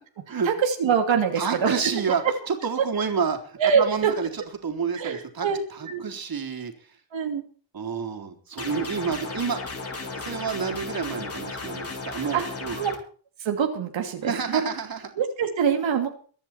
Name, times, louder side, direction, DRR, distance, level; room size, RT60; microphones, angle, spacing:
voice 1, 0.4-1.8 3.6-4.1 4.9-5.6 5.9-6.0 7.1-7.4 12.3-12.4 12.8-12.9 13.4-14.6 15.2-16.1, right 7 dB, 90° right, 4 dB, 3.0 m, -24 dB
voice 2, 1.4-6.9 7.7-9.6 10.2-12.8 14.2-15.0, right 6 dB, 50° right, 5 dB, 3.9 m, -29 dB
sound 1, 8.6-13.0, left 3 dB, 30° left, 4.8 m, -35 dB
23.5 x 10.0 x 4.5 m, 0.43 s
cardioid pair, 105°, 44 cm